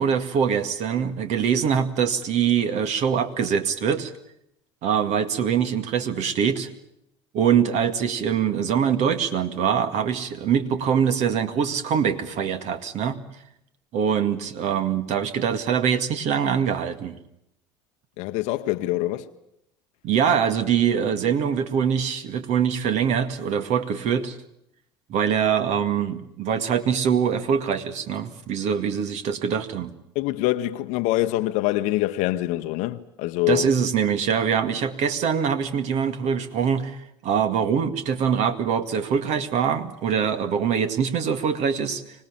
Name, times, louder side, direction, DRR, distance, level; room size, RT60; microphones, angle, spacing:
voice 1, 0.0-4.1 4.8-6.7 7.3-13.2 13.9-17.2 20.0-24.4 25.1-29.9 33.5-37.0 37.2-42.0, right 7 dB, 55° right, 2.1 m, -23 dB
voice 2, 18.2-19.3 30.1-33.7, left 16 dB, 65° left, 0.9 m, -25 dB
25.0 x 19.0 x 8.9 m
hypercardioid pair, 70°, 13 cm